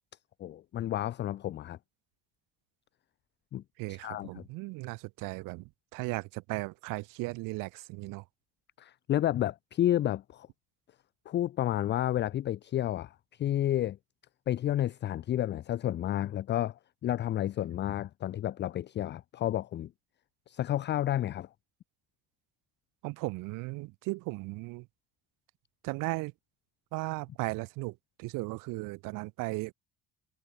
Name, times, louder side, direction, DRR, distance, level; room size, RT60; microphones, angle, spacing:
voice 1, 0.4-1.8 3.5-3.6 3.9-4.5 8.8-10.5 11.3-14.0 14.5-19.9 20.5-21.5, left 12 dB, 35° left, 0.5 m, -31 dB
voice 2, 3.8-8.2 23.0-24.9 25.8-26.3 26.9-29.7, right 24 dB, 90° right, 0.5 m, -36 dB
cardioid pair, 160°, 31 cm